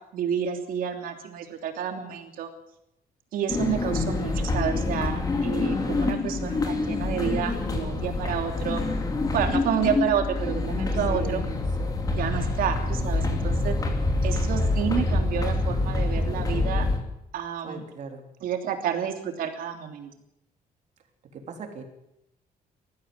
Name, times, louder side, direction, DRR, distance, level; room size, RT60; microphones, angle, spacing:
voice 1, 0.1-2.5 3.3-8.8 9.3-11.4 12.1-13.8 14.2-16.9 17.3-17.8 18.4-20.1, right 8 dB, 70° right, 5 dB, 3.1 m, -30 dB
sound 1, 3.5-17.0, left 2 dB, 25° left, 3.0 m, -26 dB
voice 2, 5.5-6.1 10.8-11.4 11.8-12.0 17.6-18.3 21.3-21.8, right 4 dB, 50° right, 4 dB, 3.7 m, -39 dB
19.5 x 14.5 x 9.7 m, 0.83 s
cardioid pair, 165°, 15 cm